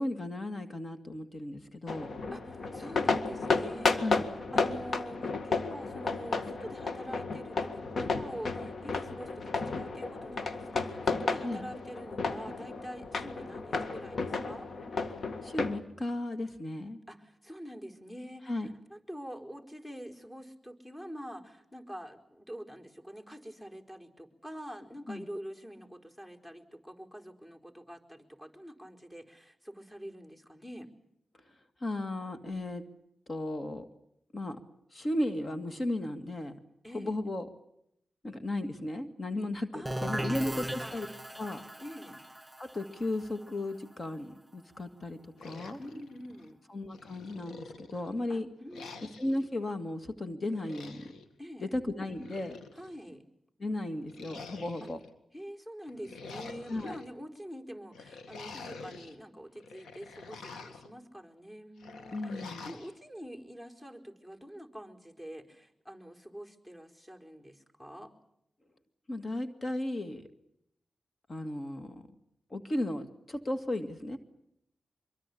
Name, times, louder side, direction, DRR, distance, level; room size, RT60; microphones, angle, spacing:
voice 1, 0.0-2.1 4.0-4.3 11.4-11.7 15.4-17.0 18.5-18.7 25.1-25.3 31.8-32.8 33.3-33.9 34.3-34.6 34.9-36.5 36.9-37.5 38.2-39.7 40.0-41.1 41.4-41.6 42.6-45.8 46.7-48.5 49.2-51.1 51.6-52.6 53.6-55.0 56.7-57.0 62.1-62.7 69.1-70.3 71.3-72.1 72.5-74.2, left 1 dB, 50° left, 8 dB, 2.2 m, -35 dB
sound 1, 1.9-15.8, left 4 dB, 70° left, 1.8 m, -33 dB
voice 2, 2.3-7.7 8.0-14.7 17.1-30.9 36.8-37.1 39.7-41.0 41.8-42.2 45.8-46.6 48.3-49.1 51.4-51.7 52.7-53.2 55.3-68.1, equal, 20° left, 4 dB, 4.5 m, -45 dB
sound 2, 39.9-45.4, right 1 dB, 10° right, 3.8 m, -39 dB
sound 3, 45.4-46.5 46.9-48.1 48.7-49.4 50.5-51.3 52.0-53.0 54.1-55.1 55.8-57.1 57.9-59.2 59.6-60.9 61.8-62.9, left 4 dB, 90° left, 2.0 m, -47 dB
24.5 x 23.0 x 8.6 m, 0.77 s
cardioid pair, 45°, 0 cm